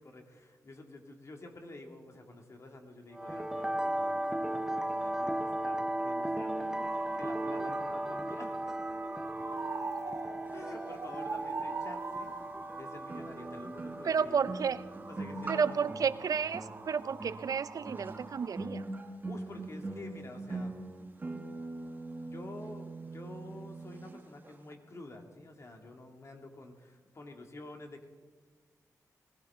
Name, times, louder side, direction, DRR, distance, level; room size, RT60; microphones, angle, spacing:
voice 1, 0.0-8.6 10.5-12.3 12.7-14.4 15.0-15.9 19.3-20.7 22.2-28.1, left 2 dB, 50° left, 3 dB, 2.2 m, -49 dB
sound 1, 3.1-17.2, right 1 dB, 10° right, 0.7 m, -37 dB
sound 2, 6.8-18.6, right 4 dB, 45° right, 1.4 m, -43 dB
sound 3, 11.7-11.8 13.1-24.2 24.4-24.7, right 2 dB, 30° right, 1.3 m, -42 dB
voice 2, 14.0-14.8 15.5-18.8, right 6 dB, 65° right, 14 dB, 0.5 m, -31 dB
20.0 x 16.0 x 3.7 m, 1.5 s
wide cardioid pair, 85°, 6 cm